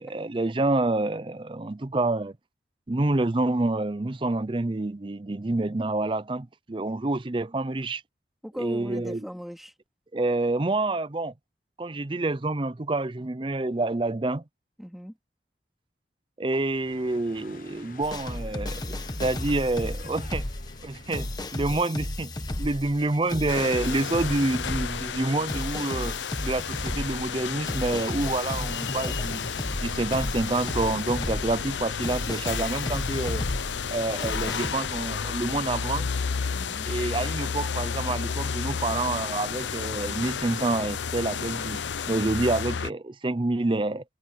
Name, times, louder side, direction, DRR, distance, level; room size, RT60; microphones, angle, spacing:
voice 1, 0.0-2.4 2.9-8.0 8.6-9.2 10.1-11.3 11.8-14.4 16.4-18.9 19.2-20.5 20.8-26.1 26.4-33.5 33.9-36.1 36.9-44.0, right 2 dB, 30° right, 0.5 m, -28 dB
voice 2, 8.4-9.7 14.8-15.2 36.5-36.9, equal, ahead, 2.3 m, -38 dB
sound 1, 16.5-21.7, left 3 dB, 50° left, 1.1 m, -49 dB
sound 2, 18.0-34.7, left 1 dB, 20° left, 1.2 m, -34 dB
sound 3, 23.5-42.9, left 6 dB, 85° left, 0.6 m, -32 dB
head